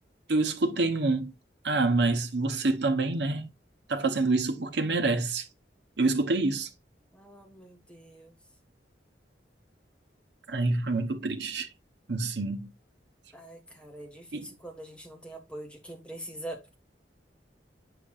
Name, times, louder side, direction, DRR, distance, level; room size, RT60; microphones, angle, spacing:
voice 1, 0.3-1.3 1.6-3.5 3.9-5.4 6.0-6.7 10.5-11.7 12.1-12.7 14.3-14.4, right 3 dB, 70° right, 1.0 m, -27 dB
voice 2, 7.1-8.3 13.3-16.7, right 1 dB, 5° left, 1.5 m, -44 dB
7.0 x 5.9 x 2.4 m
head